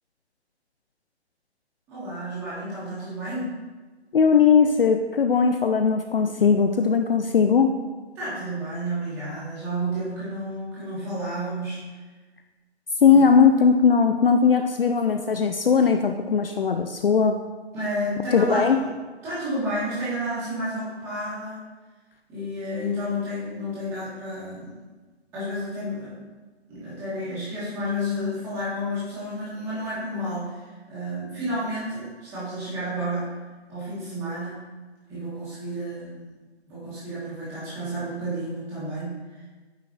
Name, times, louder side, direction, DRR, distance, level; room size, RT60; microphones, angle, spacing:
voice 1, 1.9-3.5 8.1-11.8 13.1-13.3 17.7-18.9 19.2-21.6 22.3-24.7 25.3-26.3 26.7-33.3 33.7-34.6 35.1-36.3 36.7-39.5, equal, 10° right, -11 dB, 1.4 m, -31 dB
voice 2, 4.1-7.8 13.0-17.4 18.3-18.8, left 6 dB, 55° left, 5 dB, 0.4 m, -19 dB
8.9 x 4.7 x 2.5 m, 1.3 s
hypercardioid pair, 165°, 33 cm